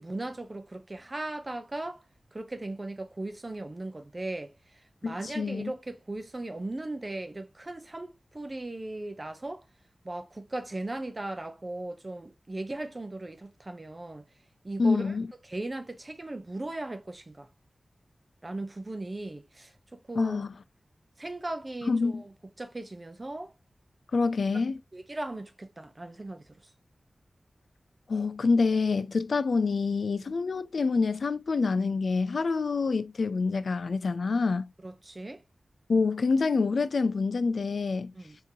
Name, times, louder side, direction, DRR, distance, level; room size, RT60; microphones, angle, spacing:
voice 1, 0.0-2.0 2.3-9.6 10.0-14.2 14.6-15.1 15.4-17.5 18.4-20.4 21.2-22.3 22.6-23.5 24.9-26.4 34.8-35.4 38.1-38.4, right 2 dB, 30° right, 0.6 m, -38 dB
voice 2, 5.0-5.7 14.8-15.3 20.2-20.5 21.9-22.2 24.1-24.8 28.1-34.7 35.9-38.1, left 4 dB, 75° left, 0.3 m, -26 dB
3.6 x 3.0 x 2.7 m
wide cardioid pair, 105°, 0 cm